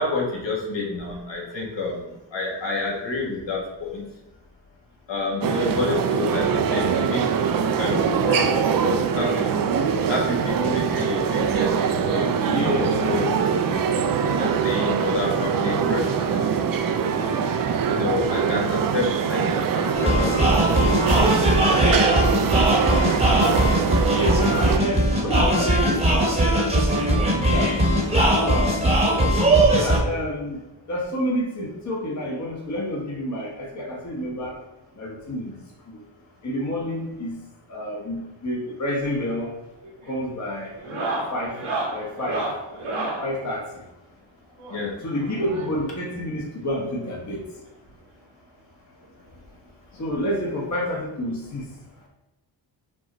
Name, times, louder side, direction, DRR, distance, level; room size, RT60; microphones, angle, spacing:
voice 1, 0.0-2.0 2.3-4.0 5.1-7.2 7.5-8.5 8.8-9.4 10.1-13.8 14.2-17.2 17.9-21.5 44.7-44.9, left 3 dB, 65° left, -2 dB, 1.5 m, -29 dB
sound 1, 5.4-24.8, right 7 dB, 50° right, 0.5 m, -23 dB
voice 2, 12.4-13.0 24.2-26.7 27.3-27.7 28.4-28.9 29.8-30.6 30.9-34.6 35.0-35.6 36.4-37.3 37.7-39.5 40.1-40.7 41.3-41.6 41.9-42.4 43.2-43.8 45.0-47.4 50.0-51.6, equal, 35° left, -3 dB, 1.1 m, -29 dB
sound 2, 19.9-30.0, right 1 dB, 15° right, 1.1 m, -20 dB
sound 3, 39.2-39.5 39.8-40.2 40.7-43.3 44.6-46.0 47.0-47.1 47.3-47.4 47.9-48.0 49.3-49.4 50.7-50.8, right 2 dB, 80° right, 1.4 m, -31 dB
5.9 x 2.1 x 3.8 m, 0.96 s
cardioid pair, 65°, 47 cm